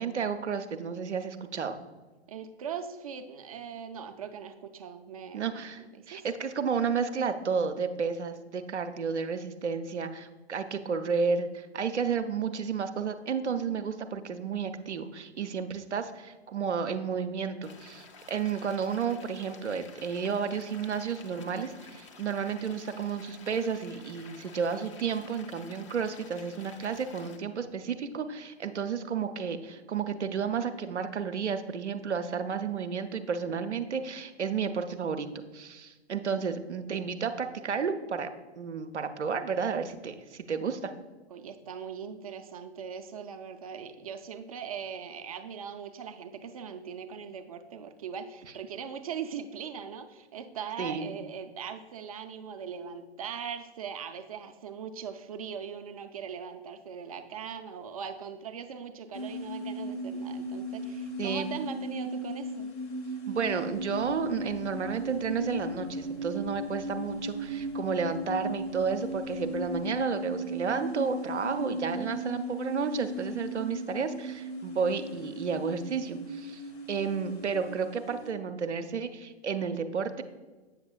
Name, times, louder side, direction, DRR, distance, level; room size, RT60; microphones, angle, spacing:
voice 1, 0.0-1.7 5.3-35.3 35.5-38.3 38.6-40.9 50.8-51.1 61.2-61.5 63.3-76.6 76.9-80.2, right 6 dB, 85° right, 8 dB, 0.5 m, -32 dB
voice 2, 2.3-5.5 5.9-6.3 41.3-62.7, right 7 dB, 35° right, 8 dB, 0.4 m, -40 dB
sound 1, 17.6-27.4, left 4 dB, 30° left, 0.4 m, -51 dB
sound 2, 59.1-78.3, equal, 50° left, 1.0 m, -37 dB
sound 3, 63.7-70.0, left 1 dB, 80° left, 1.2 m, -52 dB
8.0 x 6.0 x 2.2 m, 1.3 s
figure-of-eight pair, 120°, 33 cm